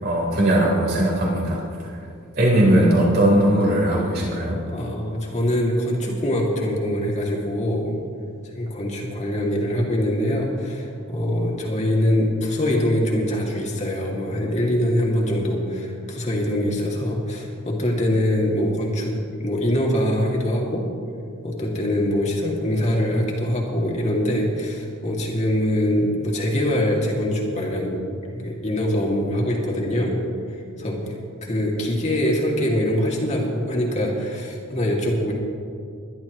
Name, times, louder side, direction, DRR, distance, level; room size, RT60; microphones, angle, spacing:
voice 1, 0.0-1.6 2.4-4.6, right 1 dB, 50° right, -3 dB, 3.7 m, -19 dB
voice 2, 4.7-8.0 8.4-20.9 21.4-28.0 28.3-30.2 30.5-35.3, equal, 35° left, -2 dB, 2.4 m, -23 dB
22.0 x 11.5 x 3.0 m, 2.3 s
head